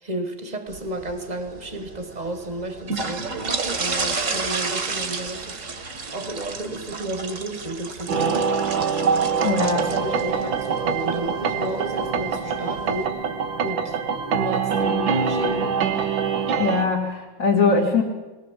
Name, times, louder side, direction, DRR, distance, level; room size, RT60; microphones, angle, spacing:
voice 1, 0.0-5.6 6.1-8.5 9.3-13.2 13.6-15.8, right 1 dB, 20° right, 1.7 m, -32 dB
sound 1, 0.7-13.1, right 4 dB, 45° right, 1.8 m, -32 dB
sound 2, 8.1-16.9, right 6 dB, 80° right, 1.9 m, -24 dB
voice 2, 9.4-9.9 16.6-18.0, left 4 dB, 40° left, 2.6 m, -21 dB
20.5 x 18.5 x 7.4 m
omnidirectional pair, 2.1 m